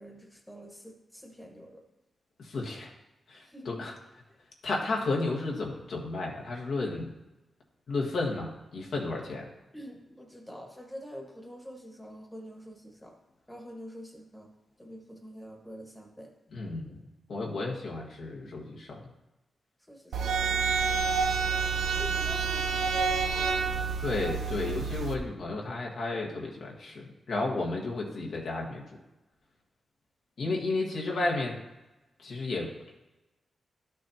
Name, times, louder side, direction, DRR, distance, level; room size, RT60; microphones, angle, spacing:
voice 1, 0.0-1.8 3.5-3.8 9.7-13.1 13.5-14.5 14.8-16.3 19.9-21.5 22.0-23.9 30.4-30.8, equal, 5° left, 1 dB, 1.5 m, -46 dB
voice 2, 2.4-2.9 3.3-3.9 4.6-7.1 7.9-9.5 16.5-17.0 17.3-19.0 24.0-28.8 30.4-31.6 32.2-32.7, left 3 dB, 70° left, -2 dB, 1.6 m, -32 dB
sound 1, 20.1-25.2, right 5 dB, 85° right, 0.7 m, -28 dB
11.5 x 6.3 x 2.9 m, 1.0 s
cardioid pair, 90°, 0 cm